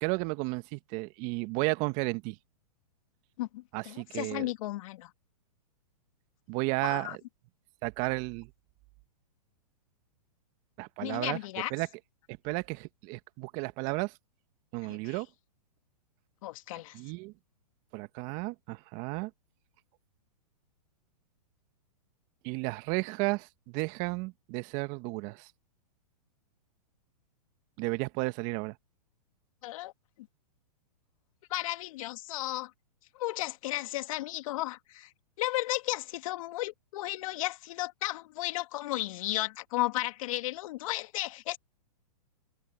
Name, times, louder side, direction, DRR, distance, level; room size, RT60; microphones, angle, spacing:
voice 1, 0.0-2.4 3.7-4.5 6.5-7.2 7.8-8.5 10.8-11.4 11.7-11.9 12.3-14.1 14.7-15.3 16.9-17.3 17.9-19.3 22.4-25.5 27.8-28.8, right 25 dB, 40° right, 1.6 m, -33 dB
voice 2, 3.4-5.1 6.8-7.2 11.0-11.7 14.9-15.2 16.4-17.0 29.6-29.9 31.5-32.7 33.1-35.1 35.4-41.6, left 17 dB, 55° left, 2.4 m, -34 dB
hypercardioid pair, 125°, 21 cm